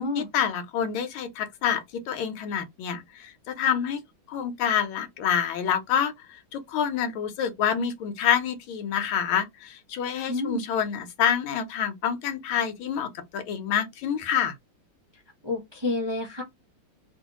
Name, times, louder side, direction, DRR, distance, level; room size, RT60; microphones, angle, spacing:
voice 1, 0.0-4.0 4.3-14.5, left 8 dB, 80° left, 1.5 m, -27 dB
voice 2, 10.3-10.6 15.4-16.4, left 2 dB, 45° right, 0.3 m, -29 dB
3.1 x 2.8 x 2.8 m
omnidirectional pair, 2.3 m